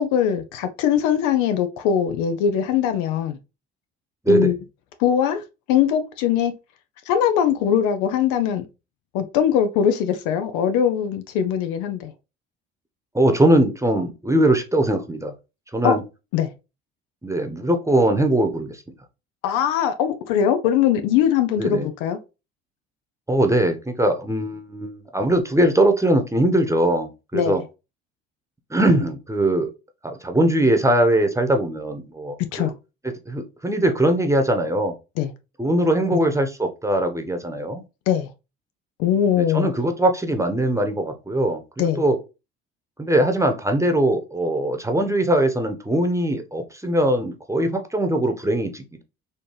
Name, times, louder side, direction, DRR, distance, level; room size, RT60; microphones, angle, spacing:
voice 1, 0.0-3.4 4.3-4.6 5.0-5.4 5.7-6.5 7.1-8.7 9.1-12.1 15.8-15.9 16.3-16.5 19.4-22.2 27.3-27.6 32.5-32.7 35.2-35.3 36.1-36.2 38.1-38.3 39.0-39.7 41.8-42.0, left 9 dB, 70° left, 0.7 m, -21 dB
voice 2, 13.1-15.3 15.7-16.0 17.2-18.8 21.6-21.9 23.3-27.6 28.7-29.7 30.0-32.7 33.3-34.9 35.6-37.8 39.4-42.2 43.0-49.0, right 1 dB, 10° right, 1.0 m, -21 dB
4.2 x 2.7 x 3.2 m
hypercardioid pair, 55°, 32 cm